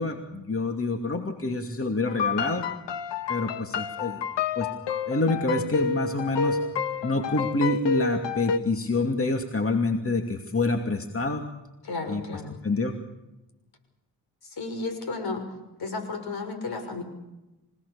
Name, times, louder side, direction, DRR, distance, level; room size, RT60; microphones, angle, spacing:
voice 1, 0.0-2.6 3.3-4.2 4.6-4.7 5.1-6.6 7.0-11.4 12.1-12.2 12.6-13.0, left 2 dB, 30° left, 4 dB, 2.6 m, -27 dB
sound 1, 2.1-8.6, left 5 dB, 85° left, 1.2 m, -29 dB
voice 2, 11.8-12.6 14.4-15.4 15.8-17.0, left 3 dB, 60° left, 7 dB, 6.1 m, -33 dB
26.5 x 18.0 x 7.1 m, 1.0 s
supercardioid pair, 55°, 42 cm